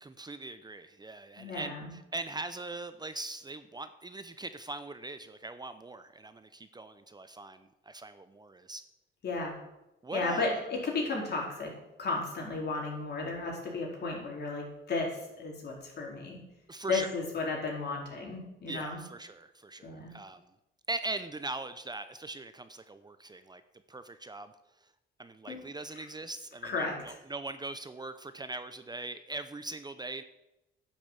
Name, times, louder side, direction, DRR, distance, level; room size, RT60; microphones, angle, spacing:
voice 1, 0.0-8.8 10.0-10.6 16.7-17.1 18.7-20.4 20.9-23.6 23.9-24.5 25.2-30.2, right 2 dB, 20° right, 11 dB, 0.7 m, -41 dB
voice 2, 1.4-1.9 9.2-9.6 10.1-11.7 12.0-16.4 16.9-19.0 19.8-20.1 25.5-25.6 25.9-26.0 26.6-27.2, left 3 dB, 55° left, -1 dB, 4.5 m, -34 dB
10.0 x 7.4 x 8.2 m, 0.92 s
cardioid pair, 90°, 20 cm